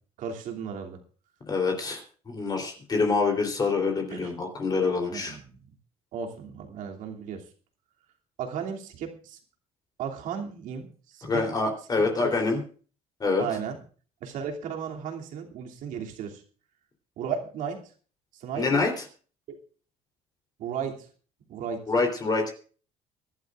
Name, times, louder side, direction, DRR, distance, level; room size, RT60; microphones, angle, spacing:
voice 1, 0.2-1.0 4.1-4.3 5.1-5.6 6.1-7.4 8.4-9.4 10.0-11.4 12.2-12.3 13.4-13.8 14.2-16.4 17.2-17.8 18.3-18.8 19.5-19.6 20.6-21.1 21.5-21.8, right 7 dB, 70° right, 2 dB, 2.8 m, -35 dB
voice 2, 1.5-2.0 2.3-5.4 11.2-12.6 13.2-13.5 18.6-19.0 21.9-22.5, left 4 dB, 30° left, 3 dB, 3.4 m, -26 dB
24.5 x 11.5 x 2.5 m, 0.40 s
cardioid pair, 110°, 14 cm